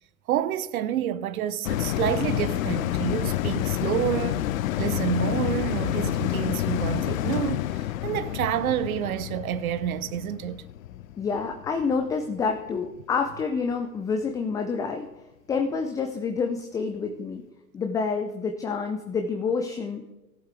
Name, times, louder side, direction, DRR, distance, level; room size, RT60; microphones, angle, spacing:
voice 1, 0.3-4.5 4.8-10.6, right 11 dB, 65° right, 0.9 m, -28 dB
sound 1, 1.6-12.3 12.8-12.9, left 13 dB, 60° left, 0.6 m, -28 dB
voice 2, 11.2-15.1 15.5-17.4 17.7-20.0, left 5 dB, 10° left, 0.4 m, -28 dB
17.5 x 8.0 x 3.4 m
figure-of-eight pair, 100°, 45 cm